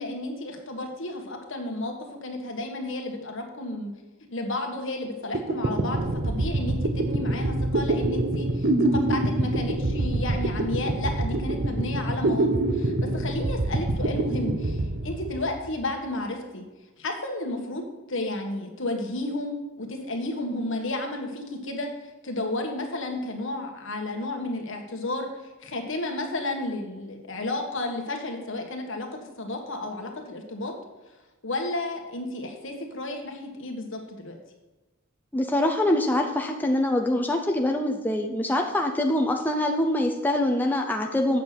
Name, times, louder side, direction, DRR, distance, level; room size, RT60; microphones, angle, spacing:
voice 1, 0.0-1.9 2.2-3.9 4.3-16.6 17.0-17.8 18.1-21.9 22.2-25.3 25.6-29.1 29.4-30.7 31.4-34.4, left 2 dB, 65° left, 3 dB, 1.5 m, -32 dB
sound 1, 5.0-5.1 5.3-15.8, right 2 dB, 50° right, 0.7 m, -26 dB
voice 2, 35.3-41.4, left 1 dB, 10° left, 2 dB, 0.6 m, -24 dB
8.4 x 6.6 x 5.9 m, 1.1 s
head